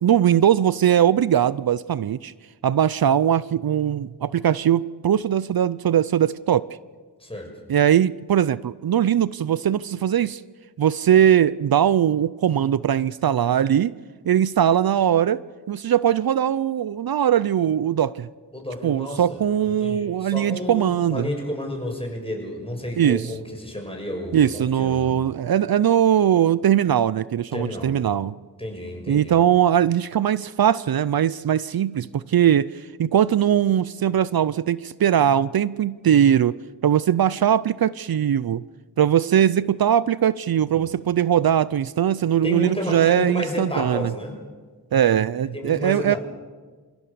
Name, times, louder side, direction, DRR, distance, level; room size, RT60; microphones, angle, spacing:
voice 1, 0.0-2.3 2.6-6.7 7.7-10.4 10.8-13.9 14.3-15.4 15.7-18.3 18.8-21.3 23.0-23.3 24.3-28.3 29.1-36.6 36.8-38.6 39.0-44.1 44.9-46.2, right 10 dB, 70° right, 18 dB, 0.6 m, -20 dB
voice 2, 18.5-25.1 27.5-27.9 28.6-29.3 40.7-40.9 42.4-44.3 45.5-46.2, left 1 dB, 15° left, 1 dB, 6.6 m, -31 dB
27.5 x 16.0 x 6.9 m, 1.4 s
cardioid pair, 55°, 38 cm